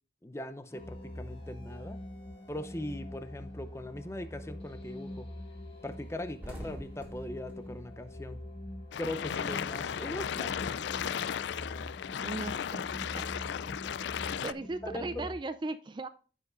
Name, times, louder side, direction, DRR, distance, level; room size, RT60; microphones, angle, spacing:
voice 1, 0.2-2.0 2.5-5.3 5.8-8.4 9.0-10.8 14.8-15.3, left 1 dB, 15° left, 0.6 m, -40 dB
sound 1, 0.7-15.4, left 1 dB, 30° left, 4.3 m, -44 dB
sound 2, 4.3-4.6 5.0-5.2 5.4-5.6 5.9-8.9 9.2-10.8, equal, 10° right, 2.2 m, -48 dB
sound 3, 8.9-14.5, left 8 dB, 75° left, 0.3 m, -35 dB
voice 2, 12.2-13.4 14.4-16.1, right 2 dB, 25° right, 0.3 m, -38 dB
15.5 x 5.4 x 2.5 m
head